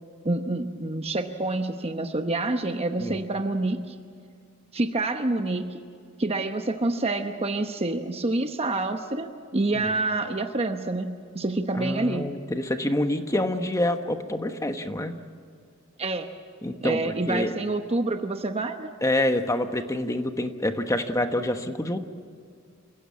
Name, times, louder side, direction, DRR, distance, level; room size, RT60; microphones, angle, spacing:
voice 1, 0.2-3.9 4.7-5.8 6.2-12.2 16.0-16.3 16.8-18.9, right 2 dB, 30° right, 6 dB, 0.9 m, -27 dB
voice 2, 11.7-15.2 16.6-17.5 19.0-22.0, left 1 dB, 15° left, 7 dB, 1.2 m, -27 dB
27.5 x 16.0 x 8.6 m, 2.2 s
head